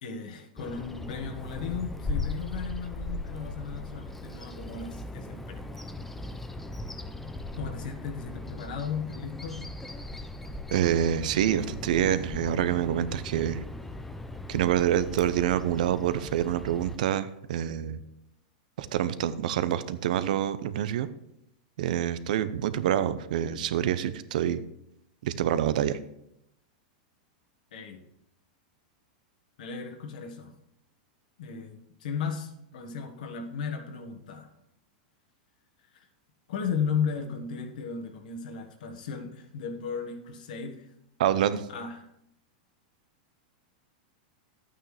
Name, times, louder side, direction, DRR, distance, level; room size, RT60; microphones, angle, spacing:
voice 1, 0.0-5.9 7.5-9.6 27.7-28.0 29.6-30.5 31.4-34.5 35.9-36.1 36.5-40.9 41.7-42.1, left 6 dB, 75° left, 5 dB, 1.5 m, -35 dB
Bird vocalization bird call bird song, 0.6-17.0, left 2 dB, 5° left, 0.5 m, -38 dB
voice 2, 10.7-13.6 14.5-18.0 18.8-21.1 21.8-24.6 25.2-26.0 41.2-41.6, right 10 dB, 70° right, 14 dB, 0.7 m, -26 dB
11.0 x 8.9 x 3.3 m, 0.79 s
supercardioid pair, 145°, 4 cm